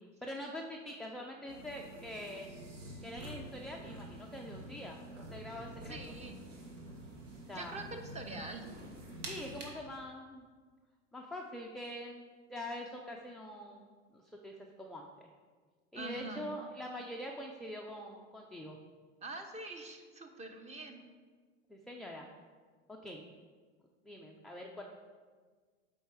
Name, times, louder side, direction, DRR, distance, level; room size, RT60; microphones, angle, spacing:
voice 1, 0.2-2.5 3.0-6.0 7.5-7.8 9.3-10.5 11.1-15.3 15.9-18.8 21.7-22.3 22.9-23.2 24.0-24.8, left 1 dB, ahead, -1 dB, 0.3 m, -44 dB
sound 1, 1.5-9.6, right 1 dB, 75° right, 1.6 m, -48 dB
voice 2, 5.9-6.4 7.5-8.7 15.9-16.5 19.2-21.0, right 3 dB, 15° right, 5 dB, 0.8 m, -44 dB
7.9 x 4.5 x 4.8 m, 1.5 s
hypercardioid pair, 95°, 38 cm